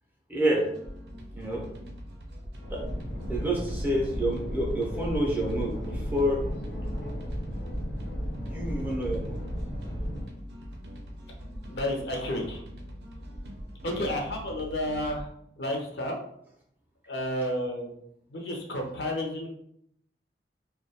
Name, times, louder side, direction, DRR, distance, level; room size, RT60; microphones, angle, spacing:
voice 1, 0.3-0.7 1.3-1.6 2.7-2.8 3.3-6.4 8.4-9.4, right 1 dB, 10° right, -3 dB, 0.4 m, -28 dB
sound 1, 0.7-15.3, equal, 65° right, 0.5 m, -43 dB
sound 2, 2.6-10.2, equal, 90° left, 1.1 m, -34 dB
voice 2, 11.7-12.6 13.8-15.3 15.6-16.2 17.1-17.9 18.3-19.5, left 1 dB, 70° left, 1 dB, 0.5 m, -31 dB
2.2 x 2.1 x 2.7 m, 0.71 s
head